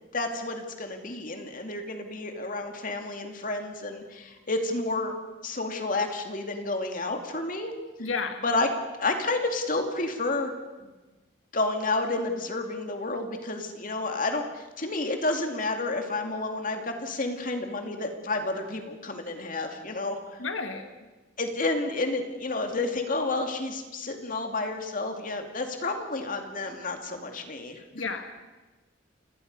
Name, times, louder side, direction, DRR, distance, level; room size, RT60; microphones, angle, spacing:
voice 1, 0.1-5.2 5.4-7.7 8.4-8.7 9.0-10.5 10.8-10.9 11.5-20.4 21.4-27.8, left 2 dB, 45° left, 5 dB, 2.3 m, -30 dB
voice 2, 8.0-8.4 20.4-20.9 27.9-28.3, left 4 dB, 85° left, 6 dB, 1.6 m, -32 dB
29.5 x 17.5 x 5.4 m, 1.2 s
head